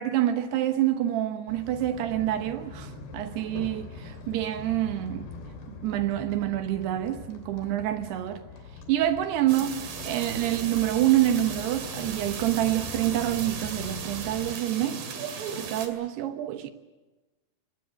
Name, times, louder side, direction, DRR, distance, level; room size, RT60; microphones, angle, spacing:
voice 1, 0.0-5.3 5.7-8.4 8.9-9.7 10.1-15.0 15.6-16.7, right 13 dB, 80° right, 3.1 m, -27 dB
sound 1, 1.5-14.6, left 4 dB, 80° left, 4.9 m, -42 dB
sound 2, 9.5-15.9, right 6 dB, 60° right, 3.9 m, -37 dB
24.5 x 19.0 x 8.2 m
omnidirectional pair, 4.7 m